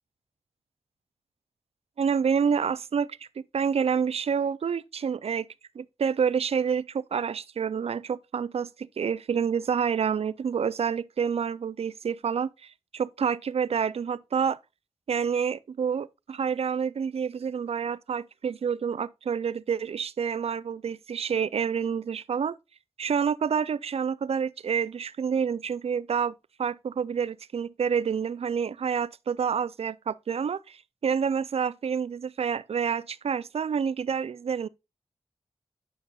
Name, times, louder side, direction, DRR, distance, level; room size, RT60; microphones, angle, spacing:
voice 1, 2.0-3.1 3.5-5.5 5.8-14.6 15.1-22.6 23.0-26.3 26.6-34.7, right 7 dB, 70° right, 0.4 m, -28 dB
8.7 x 6.7 x 2.3 m
cardioid pair, 50°, 11 cm